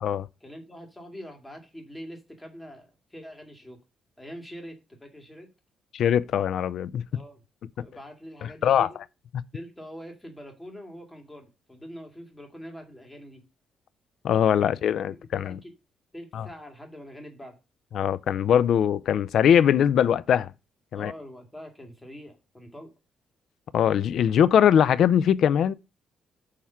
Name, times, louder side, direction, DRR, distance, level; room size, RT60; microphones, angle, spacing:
voice 1, 0.4-3.8 4.2-5.5 7.1-7.4 7.8-9.0 9.5-13.5 15.1-15.7 16.1-17.6 20.9-22.9, equal, 10° left, 2.2 m, -44 dB
voice 2, 5.9-7.0 7.8-7.9 8.4-8.9 14.2-15.6 16.3-16.5 17.9-20.5 20.9-21.1 23.7-25.7, left 9 dB, 70° left, 0.4 m, -21 dB
6.5 x 3.5 x 5.5 m
cardioid pair, 90°, 0 cm